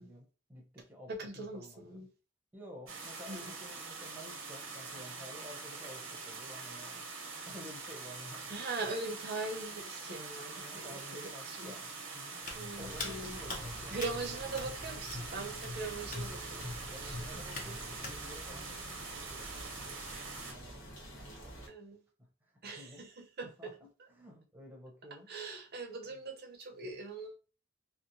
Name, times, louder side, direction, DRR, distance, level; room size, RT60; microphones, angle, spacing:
voice 1, 0.0-2.1 2.5-7.1 7.5-8.5 10.5-12.4 12.8-14.0 16.8-21.7 22.2-23.1 23.4-25.3 26.0-26.2, equal, 10° right, 0.7 m, -52 dB
voice 2, 1.1-2.1 3.3-3.5 8.5-11.0 11.2-11.7 12.5-13.4 13.9-16.6 17.0-17.2 21.7-22.0 22.6-23.7 25.3-27.4, right 3 dB, 50° right, 0.6 m, -41 dB
sound 1, 2.9-20.5, right 4 dB, 85° right, 0.8 m, -44 dB
Hands, 12.4-18.2, left 3 dB, 40° left, 0.6 m, -44 dB
sound 2, 12.8-21.7, right 1 dB, 80° left, 0.8 m, -48 dB
2.8 x 2.0 x 2.5 m
head